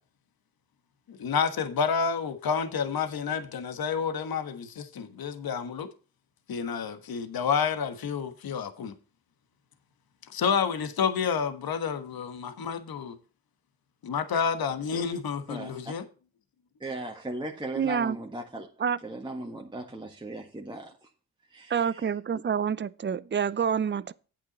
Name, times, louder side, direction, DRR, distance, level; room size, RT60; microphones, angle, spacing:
voice 1, 1.1-5.9 6.5-8.9 10.3-13.2 14.0-16.0, left 6 dB, 55° left, 1.4 m, -29 dB
voice 2, 15.5-15.9 16.8-18.7 19.0-21.1 21.5-22.1 22.3-22.4, right 1 dB, 10° right, 1.6 m, -38 dB
voice 3, 17.8-18.2 18.8-19.0 21.7-24.1, right 7 dB, 25° right, 0.6 m, -27 dB
8.9 x 8.2 x 4.1 m
hypercardioid pair, 45°, 43 cm